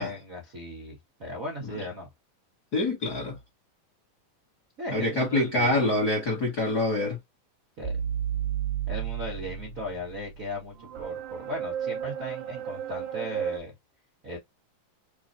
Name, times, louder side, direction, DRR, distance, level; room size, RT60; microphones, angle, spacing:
voice 1, 0.0-2.1 4.8-5.9 7.8-8.0 8.9-13.7 14.2-14.4, left 1 dB, 60° right, 0.8 m, -37 dB
voice 2, 2.7-3.4 4.9-7.2, left 2 dB, 40° left, 1.4 m, -26 dB
sound 1, 7.8-13.6, right 9 dB, 85° right, 2.5 m, -33 dB
6.8 x 2.6 x 2.7 m
omnidirectional pair, 4.1 m